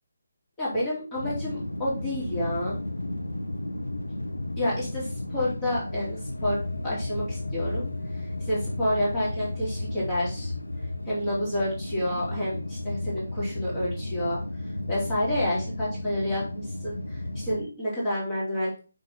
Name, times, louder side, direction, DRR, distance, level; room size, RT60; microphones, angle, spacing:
voice 1, 0.6-2.8 4.6-7.9 8.1-10.5 11.1-14.4 14.9-18.8, left 1 dB, 15° left, -8 dB, 4.0 m, -29 dB
sound 1, 1.2-17.6, left 2 dB, 75° left, 1.3 m, -33 dB
9.8 x 4.5 x 3.8 m, 0.35 s
figure-of-eight pair, 150°, 0 cm